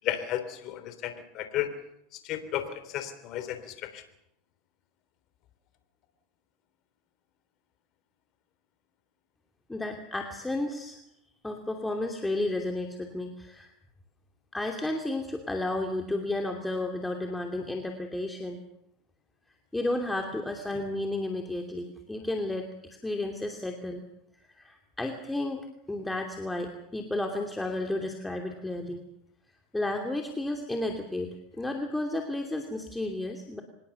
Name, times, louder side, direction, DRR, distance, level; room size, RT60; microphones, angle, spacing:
voice 1, 0.0-1.7 2.2-4.0, left 11 dB, 50° left, 10 dB, 3.3 m, -33 dB
voice 2, 9.7-11.0 11.4-13.7 14.5-18.6 19.7-24.0 24.5-29.0 29.7-33.6, left 2 dB, 10° left, 3 dB, 2.7 m, -32 dB
25.0 x 20.5 x 7.0 m, 0.78 s
supercardioid pair, 110°, 0 cm